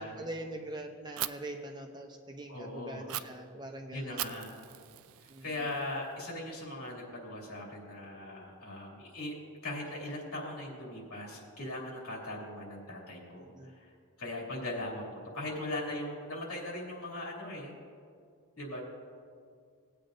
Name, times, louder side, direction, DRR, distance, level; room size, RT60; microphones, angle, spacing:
voice 1, 0.0-4.3 5.3-5.7 13.3-13.7, right 1 dB, 20° right, 3 dB, 0.7 m, -43 dB
Fire, 1.2-1.3 3.1-3.2 4.2-6.1, right 14 dB, 65° right, 0.3 m, -39 dB
voice 2, 2.5-3.1 3.9-4.5 5.4-9.4 9.6-13.9 14.2-17.8 18.6-18.8, left 1 dB, 75° left, -3 dB, 2.7 m, -39 dB
18.5 x 8.7 x 2.6 m, 2.2 s
head